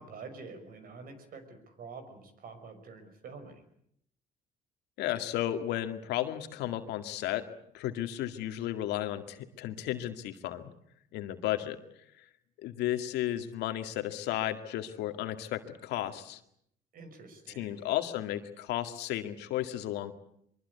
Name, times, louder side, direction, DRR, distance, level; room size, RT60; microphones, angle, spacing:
voice 1, 0.0-3.7 16.9-17.9, right 4 dB, 60° right, 9 dB, 5.9 m, -47 dB
voice 2, 5.0-7.5 7.7-10.7 11.1-11.8 12.2-12.3 12.6-16.4 17.6-20.1, left 13 dB, 85° left, 8 dB, 2.1 m, -33 dB
23.5 x 23.0 x 8.3 m, 0.71 s
cardioid pair, 110°, 17 cm